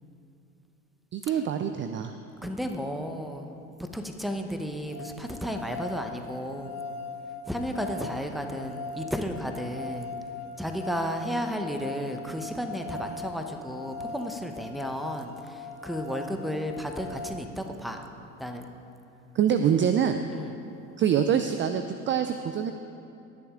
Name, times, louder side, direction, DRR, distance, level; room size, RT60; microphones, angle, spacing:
voice 1, 1.1-2.1 19.3-20.2 21.0-22.7, right 8 dB, 30° right, 8 dB, 0.4 m, -25 dB
voice 2, 2.4-3.5 3.8-6.8 7.5-10.1 10.6-18.1 18.4-18.7 20.3-20.5, equal, ahead, 5 dB, 0.9 m, -33 dB
sound 1, 4.9-17.4, left 3 dB, 40° left, 2.2 m, -40 dB
20.0 x 7.0 x 3.7 m, 2.8 s
hypercardioid pair, 80°, 42 cm